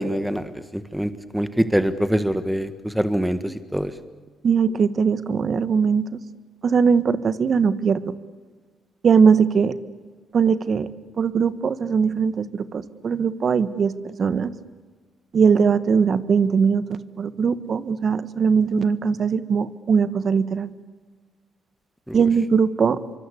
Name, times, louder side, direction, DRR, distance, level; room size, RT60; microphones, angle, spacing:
voice 1, 0.0-3.9 22.1-22.2, equal, 5° right, 11 dB, 1.5 m, -24 dB
voice 2, 4.4-6.2 6.6-8.1 9.0-9.7 10.3-10.9 11.2-14.5 15.3-20.7 22.1-23.0, right 6 dB, 50° right, 14 dB, 1.4 m, -20 dB
26.5 x 24.5 x 8.4 m, 1.4 s
cardioid pair, 90°, 0 cm